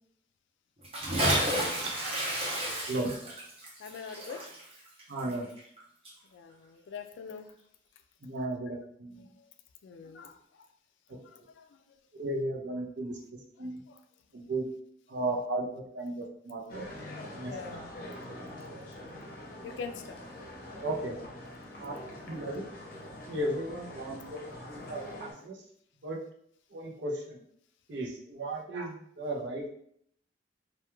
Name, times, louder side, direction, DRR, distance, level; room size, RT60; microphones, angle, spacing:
Bathtub (filling or washing) / Splash splatter, 0.8-5.8 6.0-6.1, right 1 dB, 30° right, 0.6 m, -31 dB
voice 1, 2.9-3.2 5.1-5.5 8.2-9.3 11.1-11.2 12.1-13.2 13.6-13.8 14.3-14.7 15.1-16.9 17.3-17.5 20.8-21.2 21.8-22.0 22.3-22.7 23.3-24.4 24.7-25.6 26.0-26.2 26.7-27.4 27.9-29.7, right 2 dB, 75° right, 0 dB, 0.5 m, -35 dB
voice 2, 3.8-4.4 6.3-7.5 9.4-9.5 9.8-10.7 11.2-12.0 13.9-14.0 17.5-17.8 19.6-20.2 21.9-22.0 24.8-24.9, left 5 dB, 85° left, 7 dB, 0.3 m, -44 dB
sound 1, 16.7-25.3, left 1 dB, 50° left, 0.6 m, -44 dB
2.2 x 2.2 x 3.0 m, 0.67 s
head